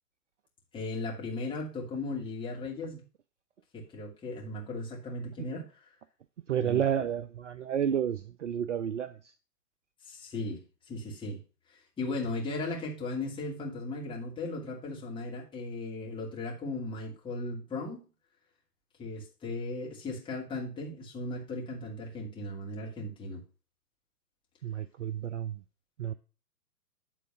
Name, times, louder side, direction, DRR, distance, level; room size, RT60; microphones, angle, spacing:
voice 1, 0.7-3.0 3.7-5.9 6.6-6.8 10.0-11.4 11.7-18.0 19.0-23.4, left 2 dB, 10° left, 2.5 m, -37 dB
voice 2, 6.5-9.3 24.6-25.6 26.0-26.1, right 9 dB, 50° right, 0.6 m, -31 dB
10.5 x 3.9 x 5.9 m
figure-of-eight pair, 120°, 48 cm